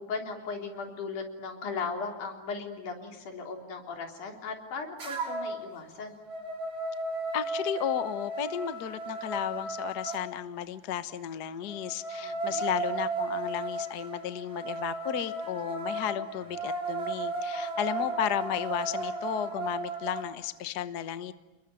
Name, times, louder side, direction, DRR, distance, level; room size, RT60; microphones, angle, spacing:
voice 1, 0.0-6.2 12.2-12.7, left 4 dB, 90° left, 3 dB, 4.8 m, -37 dB
sound 1, 5.0-5.6 6.0-10.2 11.7-20.3, right 2 dB, 70° right, 6.9 m, -35 dB
voice 2, 7.3-21.3, left 10 dB, 60° left, 12 dB, 1.0 m, -33 dB
29.5 x 21.5 x 9.1 m, 1.1 s
omnidirectional pair, 3.4 m